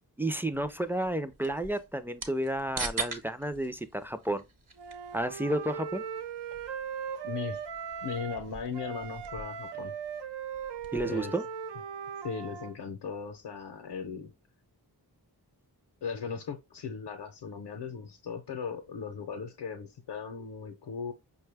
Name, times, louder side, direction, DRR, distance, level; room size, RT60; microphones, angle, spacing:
voice 1, 0.2-4.4 5.1-6.0 10.9-11.4, right 1 dB, 5° right, 0.3 m, -31 dB
sound 1, 0.5-11.2, right 4 dB, 50° right, 0.9 m, -44 dB
Wind instrument woodwind instrument, 4.8-8.5 8.7-12.7, right 7 dB, 90° right, 0.6 m, -39 dB
voice 2, 7.2-7.6 8.0-10.0 11.0-11.3 12.2-14.3 16.0-21.1, left 6 dB, 80° left, 0.6 m, -38 dB
5.4 x 2.2 x 3.3 m
wide cardioid pair, 85°, 40 cm